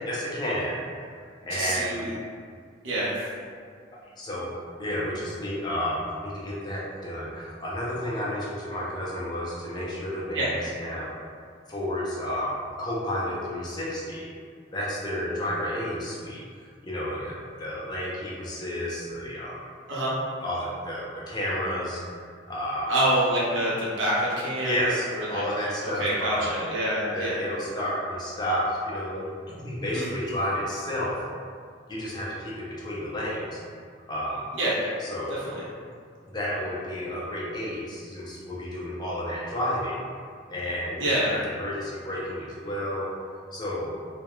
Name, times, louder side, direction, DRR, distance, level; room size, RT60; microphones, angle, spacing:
voice 1, 0.1-0.8 1.4-1.9 4.2-4.5 4.8-11.1 11.7-14.3 14.7-16.4 16.8-19.6 20.4-22.0 22.5-22.9 24.6-26.5 27.1-31.3 31.9-33.6 34.1-34.5 35.0-35.4 36.3-40.0 40.5-43.1 43.5-43.9, equal, 20° left, -6 dB, 0.4 m, -31 dB
voice 2, 1.5-2.1 2.8-3.1 10.3-10.5 19.9-20.1 22.9-25.4 25.8-27.4 29.9-30.1 34.5-34.8 35.5-35.6 41.0-41.3, right 1 dB, 75° right, -7 dB, 0.6 m, -26 dB
2.2 x 2.1 x 2.9 m, 2.1 s
head